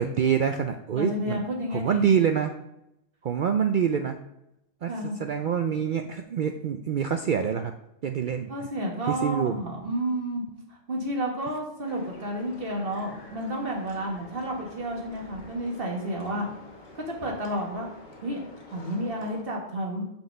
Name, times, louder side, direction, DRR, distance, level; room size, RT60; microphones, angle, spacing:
voice 1, 0.0-1.4 1.7-2.5 3.2-4.2 4.8-7.7 8.0-8.5 9.1-9.6, right 7 dB, 65° right, 7 dB, 0.5 m, -26 dB
voice 2, 0.9-2.1 4.9-5.2 8.5-10.4 10.9-16.5 16.9-17.9 18.2-18.4 18.7-20.0, equal, 45° right, 0 dB, 1.8 m, -31 dB
sound 1, 11.9-19.4, left 2 dB, 40° left, 1.2 m, -48 dB
5.9 x 5.5 x 5.6 m, 0.85 s
omnidirectional pair, 1.3 m